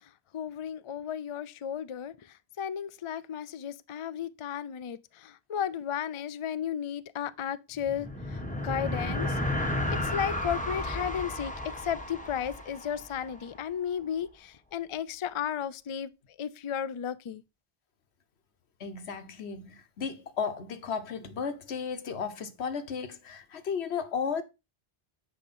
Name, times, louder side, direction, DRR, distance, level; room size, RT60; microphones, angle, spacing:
voice 1, 0.3-2.1 2.6-9.4 10.0-11.5 11.8-16.1 16.4-17.4, left 8 dB, 50° left, 0.3 m, -34 dB
sound 1, 7.7-13.5, left 1 dB, 5° left, 1.3 m, -33 dB
voice 2, 18.8-24.4, left 6 dB, 80° left, 1.3 m, -34 dB
9.9 x 4.9 x 4.3 m
omnidirectional pair, 1.1 m